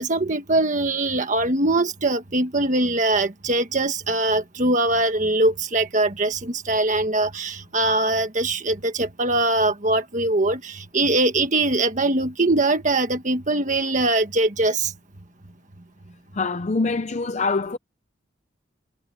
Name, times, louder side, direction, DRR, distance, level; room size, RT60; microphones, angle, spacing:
voice 1, 0.0-14.9, right 2 dB, 40° right, 1.5 m, -22 dB
voice 2, 16.3-17.8, left 3 dB, 35° left, 0.5 m, -24 dB
head